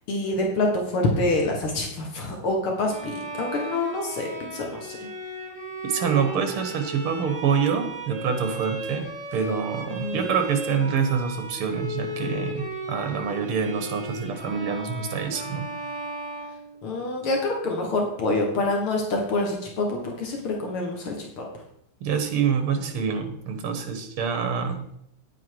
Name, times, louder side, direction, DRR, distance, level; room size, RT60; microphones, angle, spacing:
voice 1, 0.1-5.0 9.9-10.3 16.8-21.5, left 2 dB, 75° left, 1 dB, 2.5 m, -26 dB
Bowed string instrument, 2.8-17.1, right 1 dB, 35° right, 2.3 m, -36 dB
voice 2, 5.8-15.6 22.0-24.9, right 6 dB, 75° right, 7 dB, 2.3 m, -26 dB
9.6 x 8.4 x 4.7 m, 0.75 s
omnidirectional pair, 2.4 m